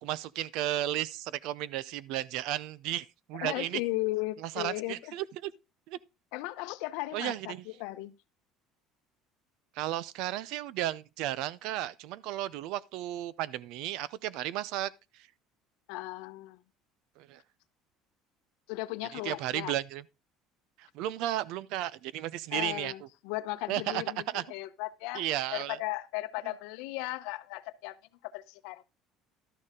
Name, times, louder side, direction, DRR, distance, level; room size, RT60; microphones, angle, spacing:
voice 1, 0.0-3.8 4.4-5.5 5.9-6.0 7.1-7.6 9.7-15.3 17.2-17.4 19.1-20.0 20.8-22.9 23.7-24.4 25.1-25.8 26.4-26.5, right 13 dB, 60° right, 0.5 m, -34 dB
voice 2, 3.3-5.1 6.3-7.5 7.8-8.1 15.9-16.6 18.7-19.7 22.5-25.2 25.5-28.0 28.2-28.8, left 19 dB, 80° left, 0.7 m, -36 dB
12.0 x 6.6 x 3.7 m
cardioid pair, 175°, 0 cm